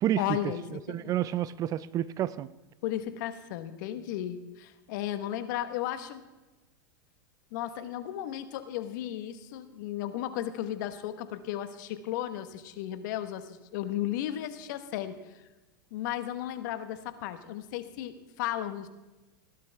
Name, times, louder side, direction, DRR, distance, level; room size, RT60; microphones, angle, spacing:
voice 1, 0.2-1.1 2.8-6.2 7.5-15.2 15.9-18.9, left 12 dB, 60° left, 10 dB, 1.3 m, -35 dB
voice 2, 0.7-2.5, right 12 dB, 30° right, 18 dB, 0.4 m, -29 dB
17.0 x 12.0 x 3.5 m, 1.1 s
hypercardioid pair, 115°, 11 cm